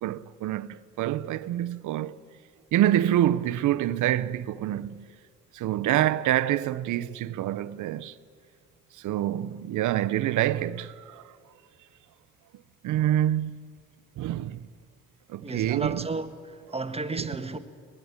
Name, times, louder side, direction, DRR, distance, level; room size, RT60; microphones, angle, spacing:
voice 1, 0.0-2.1 2.7-5.0 5.5-8.1 9.0-11.2 12.8-13.6 14.2-14.6 15.3-16.1 17.2-17.3, right 12 dB, 80° right, 0.8 m, -26 dB
voice 2, 15.4-17.6, right 3 dB, 20° right, 1.6 m, -33 dB
23.5 x 20.0 x 9.7 m
cardioid pair, 90°, 30 cm